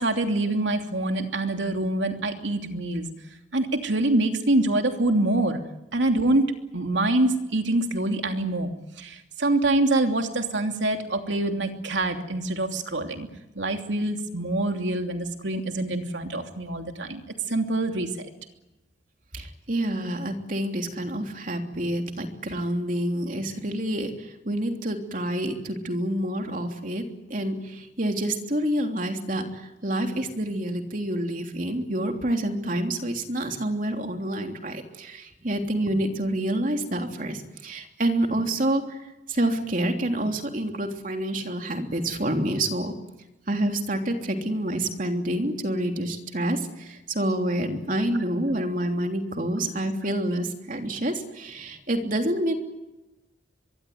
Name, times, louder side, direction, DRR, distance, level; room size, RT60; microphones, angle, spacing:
voice 1, 0.0-3.1 3.5-5.6 5.9-8.7 9.0-13.3 13.5-17.2 17.5-18.3, right 2 dB, 85° right, 4 dB, 3.0 m, -25 dB
voice 2, 19.3-27.0 27.3-39.0 39.3-42.9 43.5-52.5, right 1 dB, 45° right, 4 dB, 3.3 m, -28 dB
23.5 x 23.0 x 9.5 m, 0.97 s
head